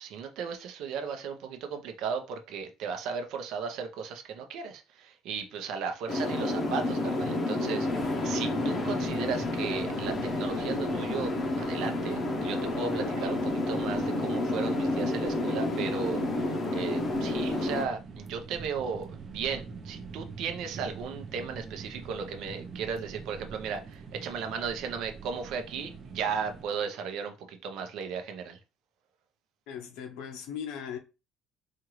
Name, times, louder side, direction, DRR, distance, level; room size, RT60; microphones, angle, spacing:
voice 1, 0.0-28.6, right 6 dB, 65° right, 0.8 m, -36 dB
sound 1, 6.1-17.8, left 2 dB, 30° left, 0.6 m, -30 dB
sound 2, 7.9-26.6, right 5 dB, 30° right, 0.6 m, -45 dB
voice 2, 29.7-31.0, left 8 dB, 90° left, 0.7 m, -38 dB
4.4 x 2.5 x 3.1 m
cardioid pair, 165°, 0 cm